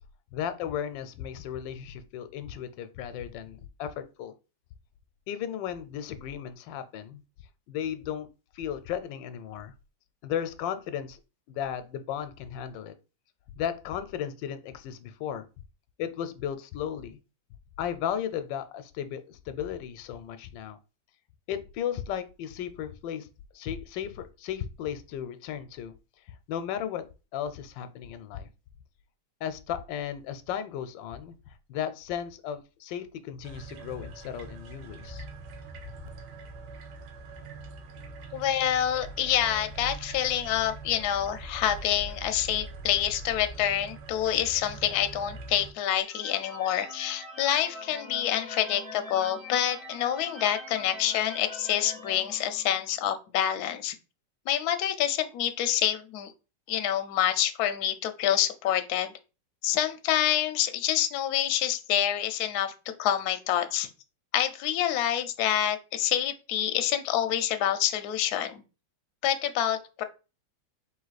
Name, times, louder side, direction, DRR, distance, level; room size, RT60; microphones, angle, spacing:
voice 1, 0.3-4.3 5.3-7.2 7.7-8.3 8.5-9.7 10.2-11.2 11.5-12.9 13.6-15.4 16.0-17.2 17.8-20.8 21.5-23.3 23.5-25.9 26.3-27.0 27.3-28.5 29.4-35.3, left 9 dB, 85° left, 11 dB, 1.3 m, -35 dB
sound 1, 33.4-45.7, right 3 dB, 80° right, 1.4 m, -43 dB
voice 2, 38.3-54.0 54.5-56.3 56.7-59.1 59.6-62.7 63.0-63.9 64.3-68.6 69.2-70.0, left 11 dB, 70° left, 8 dB, 1.0 m, -27 dB
sound 2, 46.0-53.0, left 1 dB, 30° right, 1.9 m, -43 dB
3.8 x 2.7 x 4.0 m, 0.31 s
omnidirectional pair, 1.9 m